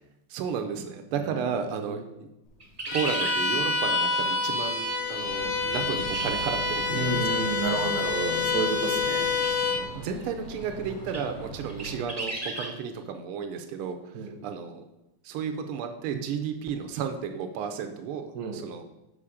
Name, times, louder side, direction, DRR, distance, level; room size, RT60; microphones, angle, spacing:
voice 1, 0.3-2.0 2.9-7.2 9.9-14.0 14.4-14.8 15.3-18.9, right 7 dB, 85° right, 6 dB, 1.6 m, -33 dB
voice 2, 1.1-2.0 6.9-9.3 14.1-14.4 18.3-18.6, right 4 dB, 60° right, 4 dB, 1.1 m, -31 dB
sound 1, 2.6-3.4 6.1-6.3 6.6-6.7 9.4-9.6 10.2-10.3 11.1-11.2 11.7-12.7, right 1 dB, 25° right, 0.8 m, -34 dB
Bowed string instrument, 2.9-9.9, left 4 dB, 85° left, 2.1 m, -27 dB
sound 2, 5.2-12.1, right 1 dB, 60° left, 3.0 m, -40 dB
7.2 x 5.2 x 4.9 m, 0.91 s
omnidirectional pair, 2.4 m